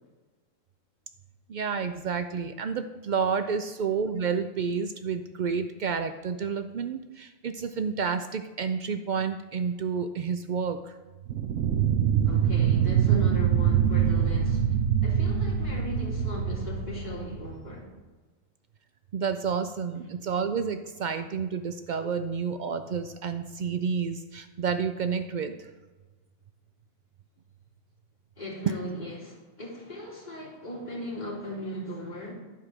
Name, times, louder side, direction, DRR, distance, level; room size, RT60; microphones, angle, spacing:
voice 1, 1.5-11.0 19.1-25.7, right 6 dB, 90° right, 8 dB, 0.4 m, -30 dB
sound 1, 11.3-17.7, right 8 dB, 70° right, 1.0 m, -24 dB
voice 2, 12.2-17.9 28.4-32.3, equal, 35° left, -6 dB, 3.2 m, -37 dB
12.0 x 5.0 x 6.0 m, 1.3 s
omnidirectional pair, 1.4 m